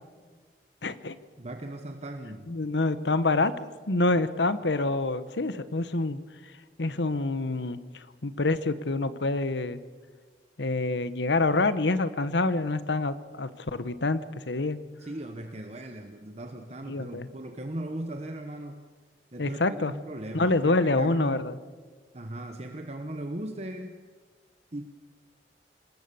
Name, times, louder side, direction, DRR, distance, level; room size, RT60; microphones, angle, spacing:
voice 1, 0.8-1.2 2.5-3.5 3.9-6.2 6.8-9.8 10.6-14.8 16.9-17.3 19.4-19.9 20.3-21.6, left 2 dB, 85° left, 14 dB, 1.1 m, -27 dB
voice 2, 1.4-2.7 15.0-18.9 19.3-21.5 22.1-24.0 24.7-24.9, right 1 dB, 40° right, 6 dB, 1.1 m, -38 dB
25.5 x 20.0 x 7.0 m, 1.4 s
head